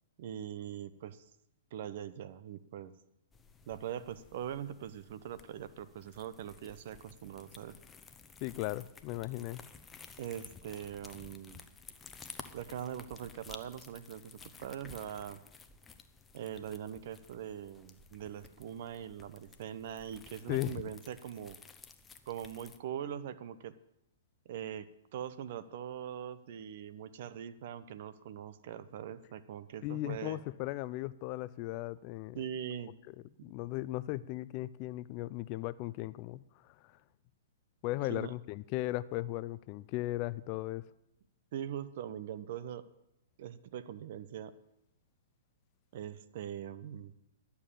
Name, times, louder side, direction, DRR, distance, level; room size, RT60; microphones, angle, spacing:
voice 1, 0.2-1.2 1.7-2.9 3.7-7.7 10.2-11.6 12.5-15.4 16.3-21.6 22.3-23.8 24.4-30.4 32.3-32.9 38.1-38.3 41.5-42.9 43.4-44.5 45.9-47.1, right 9 dB, 55° right, 14 dB, 0.8 m, -42 dB
sound 1, 3.3-22.8, left 5 dB, 15° left, 0.8 m, -54 dB
voice 2, 8.4-9.6 20.5-20.8 29.8-32.4 33.4-36.7 37.8-40.8, left 17 dB, 40° left, 18 dB, 0.4 m, -37 dB
11.5 x 7.1 x 8.7 m, 0.85 s
hypercardioid pair, 115°, 0 cm